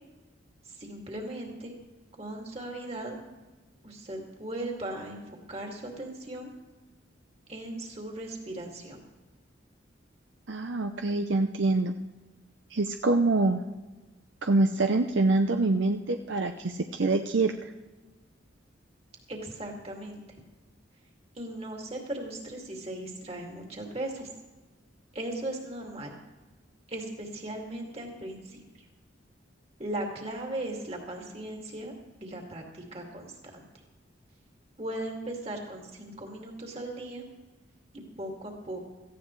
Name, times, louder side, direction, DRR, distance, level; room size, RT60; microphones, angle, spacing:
voice 1, 0.7-1.7 2.1-3.2 3.8-5.2 5.5-6.5 7.5-9.0 19.3-20.2 21.3-24.3 25.1-26.2 26.9-28.9 29.8-31.9 32.2-33.6 34.8-37.2 37.9-38.9, right 1 dB, 30° right, 1 dB, 2.4 m, -38 dB
voice 2, 10.5-11.9 12.7-13.6 14.4-17.5, right 2 dB, 70° right, 6 dB, 0.6 m, -25 dB
17.5 x 14.5 x 3.2 m, 1.2 s
head